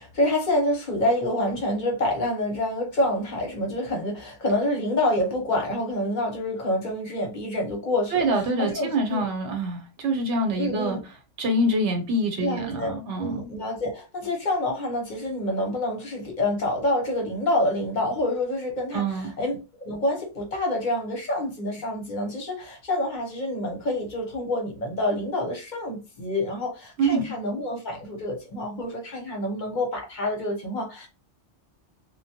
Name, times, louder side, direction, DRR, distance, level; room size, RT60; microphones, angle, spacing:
voice 1, 0.0-9.3 10.6-11.0 12.4-31.1, left 1 dB, 45° left, 0.8 m, -27 dB
voice 2, 8.1-11.0 11.4-13.5 18.9-19.3 27.0-27.2, right 1 dB, 75° right, 1.1 m, -25 dB
2.2 x 2.2 x 2.7 m
omnidirectional pair, 1.2 m